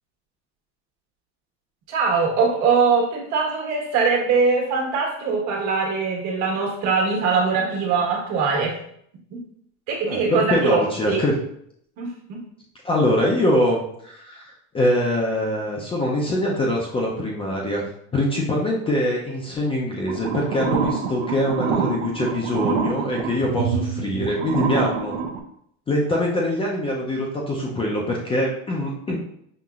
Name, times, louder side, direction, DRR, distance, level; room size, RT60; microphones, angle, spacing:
voice 1, 1.9-8.8 9.3-9.4 9.9-11.2 12.0-12.4, right 4 dB, 50° right, -1 dB, 1.4 m, -22 dB
voice 2, 10.1-11.3 12.8-17.8 18.1-25.2 25.9-29.2, left 1 dB, 15° left, -3 dB, 0.5 m, -23 dB
sound 1, 20.1-25.4, right 6 dB, 70° right, 0.7 m, -26 dB
5.7 x 2.9 x 2.4 m, 0.69 s
supercardioid pair, 140°, 36 cm